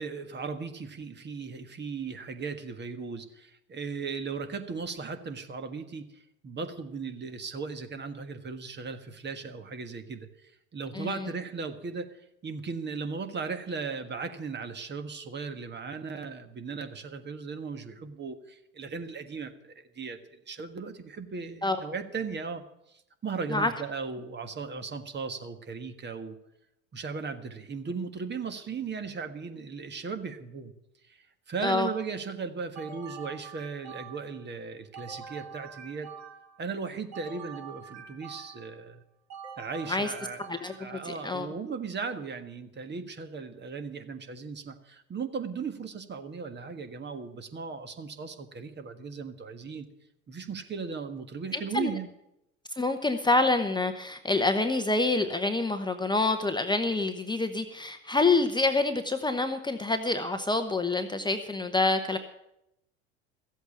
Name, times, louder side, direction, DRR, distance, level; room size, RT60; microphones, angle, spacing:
voice 1, 0.0-20.2 20.4-22.6 23.2-26.4 26.9-30.7 31.1-36.1 36.6-39.0 39.6-49.9 50.3-52.1, right 5 dB, 30° right, 8 dB, 1.6 m, -37 dB
sound 1, 32.8-34.4 34.9-36.6 37.1-38.8 39.3-41.0, right 6 dB, 45° right, 3.7 m, -45 dB
voice 2, 40.5-41.5 51.5-51.9 52.8-62.2, left 3 dB, 10° left, 7 dB, 1.0 m, -27 dB
14.0 x 8.1 x 8.5 m, 0.83 s
hypercardioid pair, 80°, 38 cm